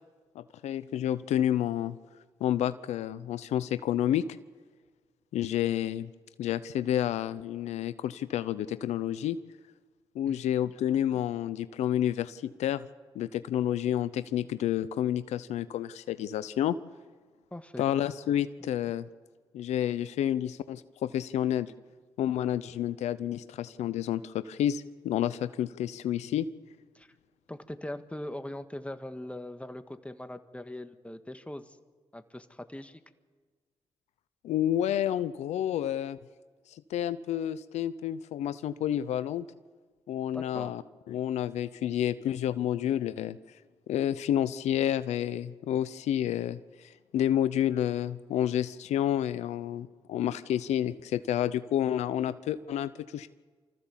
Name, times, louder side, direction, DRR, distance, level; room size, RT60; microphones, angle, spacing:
voice 1, 0.4-2.0 2.4-4.3 5.3-6.1 6.4-9.4 10.1-12.8 13.1-16.8 17.8-19.1 19.5-21.7 22.2-26.5 34.4-36.2 36.9-39.5 40.1-40.8 41.1-43.4 43.9-53.3, left 11 dB, 80° left, 15 dB, 0.5 m, -29 dB
voice 2, 17.5-17.9 26.9-27.1 27.5-31.8 32.1-33.0 40.3-40.7, left 1 dB, 10° left, 9 dB, 1.7 m, -41 dB
25.0 x 14.5 x 7.3 m, 1.5 s
supercardioid pair, 40°, 11 cm